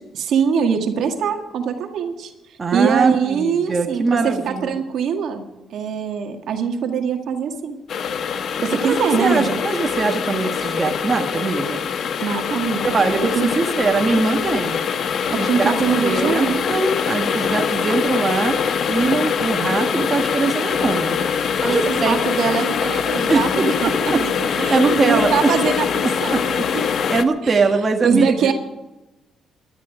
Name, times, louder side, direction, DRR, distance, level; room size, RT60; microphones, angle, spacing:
voice 1, 0.1-2.3 2.7-7.8 8.6-9.6 12.2-13.1 13.4-13.5 15.3-16.6 21.7-26.9 27.4-27.6 28.0-28.5, right 6 dB, 75° right, 4 dB, 2.0 m, -23 dB
voice 2, 2.6-4.8 8.8-11.8 12.9-14.8 15.3-15.7 16.0-18.6 18.9-22.2 23.3-25.5 26.0-28.5, right 3 dB, 30° right, 4 dB, 1.7 m, -22 dB
sound 1, 7.9-27.2, left 7 dB, 65° left, 1.1 m, -23 dB
18.5 x 12.5 x 5.1 m, 1.0 s
cardioid pair, 90°, 0 cm